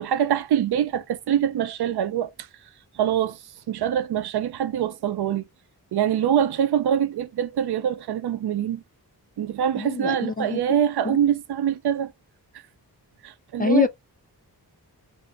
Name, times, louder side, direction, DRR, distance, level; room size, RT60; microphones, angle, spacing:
voice 1, 0.0-2.3 2.9-3.4 3.7-5.4 5.9-8.8 9.4-12.1 13.2-13.9, right 9 dB, 80° right, 0.5 m, -24 dB
voice 2, 9.8-10.6 11.0-11.2 13.6-13.9, left 5 dB, 25° left, 0.3 m, -24 dB
2.6 x 2.5 x 4.0 m
wide cardioid pair, 105°, 39 cm